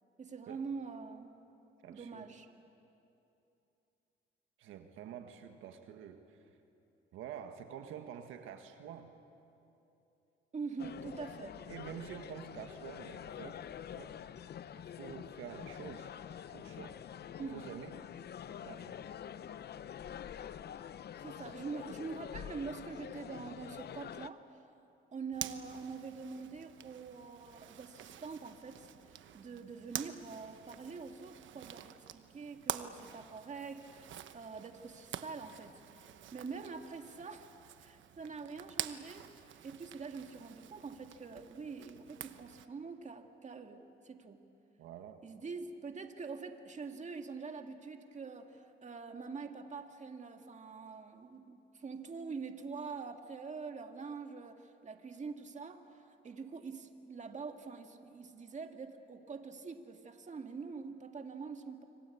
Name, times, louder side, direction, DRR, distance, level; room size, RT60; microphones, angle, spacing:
voice 1, 0.2-1.3 1.9-2.5 10.5-11.6 17.4-17.6 21.2-24.4 25.1-37.5 37.8-39.3 39.6-44.4 45.2-61.8, right 5 dB, 35° right, 5 dB, 2.0 m, -45 dB
voice 2, 1.8-2.2 4.6-6.4 7.1-9.1 11.7-13.7 13.9-14.3 14.8-16.1 16.5-17.0 17.4-18.0 18.6-19.0 44.8-45.2, right 9 dB, 90° right, 6 dB, 1.6 m, -48 dB
sound 1, 10.8-24.3, left 9 dB, 55° left, 0.7 m, -46 dB
Zipper (clothing), 25.3-42.7, right 11 dB, 75° right, 1.1 m, -47 dB
26.0 x 25.5 x 8.5 m, 2.9 s
cardioid pair, 90°, 20 cm